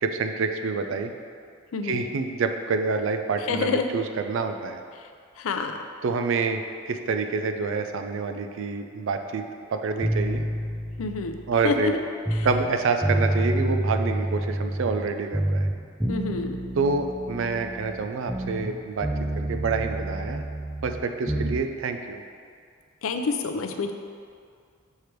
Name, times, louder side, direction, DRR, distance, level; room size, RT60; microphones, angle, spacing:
voice 1, 0.0-1.1 1.8-4.8 6.0-10.4 11.5-11.9 12.4-15.7 16.8-19.1 19.4-20.4 20.8-22.2, right 4 dB, 65° right, 6 dB, 0.4 m, -27 dB
voice 2, 1.7-2.0 3.5-3.9 5.0-5.1 5.4-5.8 11.0-11.4 11.6-12.0 12.3-12.5 16.1-16.6 23.0-23.9, left 4 dB, 75° left, 6 dB, 0.4 m, -27 dB
sound 1, 10.0-12.7 13.0-15.1 15.3-18.8 19.0-21.6, right 1 dB, 5° right, 0.4 m, -28 dB
6.4 x 3.4 x 4.5 m, 2.2 s
head